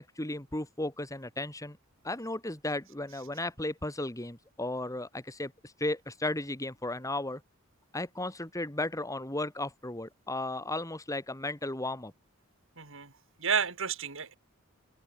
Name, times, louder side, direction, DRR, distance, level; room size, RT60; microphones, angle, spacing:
voice 1, 0.0-1.8 2.0-7.4 7.9-12.1, left 2 dB, 15° left, 2.8 m, -35 dB
voice 2, 12.8-13.1 13.4-14.4, right 6 dB, 65° right, 3.8 m, -31 dB
open air
head